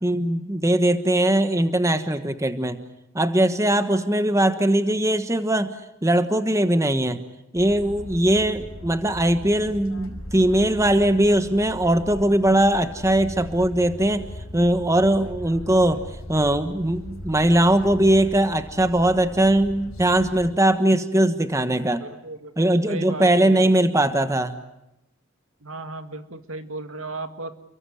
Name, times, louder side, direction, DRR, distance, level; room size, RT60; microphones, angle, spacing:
voice 1, 0.0-2.8 3.1-5.7 6.0-7.2 7.5-14.3 14.5-16.0 16.3-22.0 22.6-24.6, right 1 dB, 15° right, 10 dB, 1.3 m, -20 dB
sound 1, 7.6-20.5, equal, 75° left, 5.0 m, -39 dB
voice 2, 22.0-22.5 22.9-23.7 25.6-27.5, right 2 dB, 75° right, 8 dB, 2.1 m, -35 dB
29.5 x 23.0 x 7.9 m, 0.89 s
head